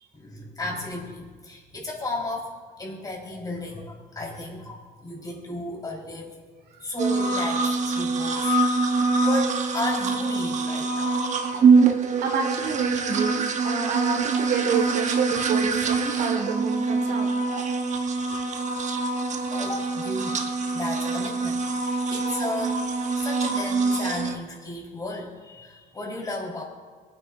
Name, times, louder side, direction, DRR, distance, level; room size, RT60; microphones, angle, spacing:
voice 1, 0.1-6.4 6.8-11.2 19.5-22.9 23.2-26.6, left 2 dB, 20° left, -2 dB, 4.1 m, -34 dB
sound 1, 7.0-24.3, right 4 dB, 45° right, 1.0 m, -24 dB
voice 2, 11.9-17.3 18.3-18.4, right 5 dB, 70° right, 3 dB, 1.7 m, -29 dB
23.5 x 9.3 x 2.6 m, 1.5 s
cardioid pair, 110°, 17 cm